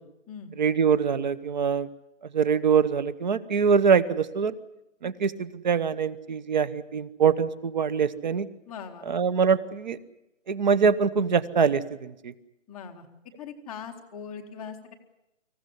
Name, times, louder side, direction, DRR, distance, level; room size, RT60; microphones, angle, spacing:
voice 1, 0.6-1.9 2.3-4.6 5.0-8.5 9.1-10.0 10.5-12.3, right 6 dB, 35° right, 17 dB, 1.1 m, -24 dB
voice 2, 8.7-9.1 12.7-13.1 13.4-14.9, left 6 dB, 5° left, -9 dB, 0.8 m, -40 dB
25.5 x 15.0 x 9.9 m, 0.91 s
figure-of-eight pair, 150°, 38 cm